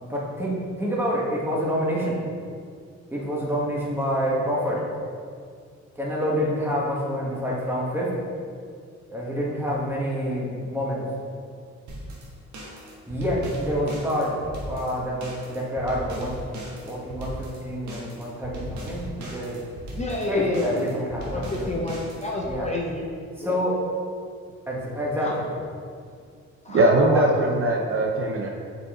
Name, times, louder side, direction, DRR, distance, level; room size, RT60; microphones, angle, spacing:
voice 1, 0.0-2.2 3.1-4.8 5.9-8.1 9.1-11.0 13.1-14.4 14.7-16.3 16.8-19.6 20.3-21.7 22.5-22.7 23.4-23.7 24.7-25.5 27.0-27.2, equal, 10° right, -5 dB, 1.7 m, -27 dB
sound 1, 11.9-22.6, right 1 dB, 80° right, 1.4 m, -38 dB
voice 2, 19.9-20.9 21.3-23.1 23.3-23.6 25.2-25.3 26.6-26.8, left 2 dB, 25° left, -2 dB, 0.7 m, -29 dB
voice 3, 26.7-28.5, right 2 dB, 45° right, 1 dB, 0.6 m, -20 dB
6.3 x 5.2 x 3.8 m, 2.2 s
cardioid pair, 105°, 29 cm